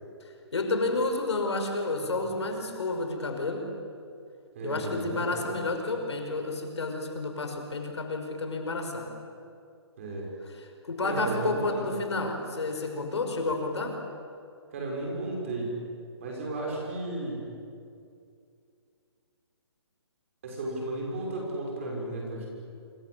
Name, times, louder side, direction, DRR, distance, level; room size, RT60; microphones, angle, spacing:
voice 1, 0.5-3.7 4.6-9.1 10.5-14.0, left 2 dB, 75° left, 4 dB, 5.4 m, -30 dB
voice 2, 4.5-5.4 10.0-10.3 11.0-11.9 14.7-15.8 16.2-17.4 20.4-22.5, right 2 dB, 30° right, -1 dB, 6.5 m, -33 dB
26.5 x 26.5 x 8.3 m, 2.4 s
hypercardioid pair, 175°, 15 cm